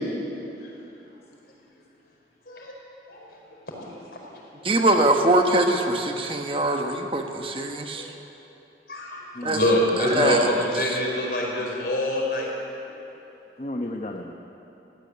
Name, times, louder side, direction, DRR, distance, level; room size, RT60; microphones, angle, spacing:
voice 1, 3.7-4.0 8.9-9.2 9.5-12.5, left 1 dB, 60° left, -1 dB, 4.8 m, -25 dB
voice 2, 4.6-8.1 9.4-9.6 10.0-11.0, right 1 dB, 30° right, 3 dB, 1.2 m, -23 dB
voice 3, 9.3-9.8 10.1-10.6 13.6-14.3, left 1 dB, 35° left, 2 dB, 1.0 m, -32 dB
17.5 x 15.5 x 9.6 m, 3.0 s
head